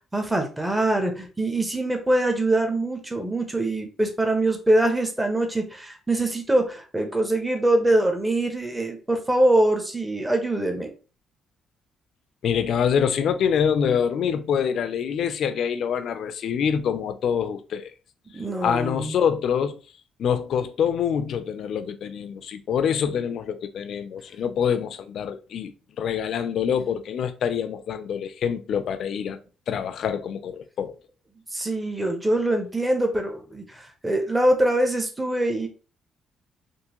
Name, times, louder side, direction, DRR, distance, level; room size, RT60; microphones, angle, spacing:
voice 1, 0.1-10.9 18.3-19.2 31.5-35.7, right 1 dB, 10° right, 0.8 m, -23 dB
voice 2, 12.4-17.9 18.6-19.8 20.2-25.7 26.0-29.4 29.7-31.0, left 7 dB, 70° left, 0.4 m, -25 dB
3.6 x 2.6 x 2.9 m
cardioid pair, 90°, 0 cm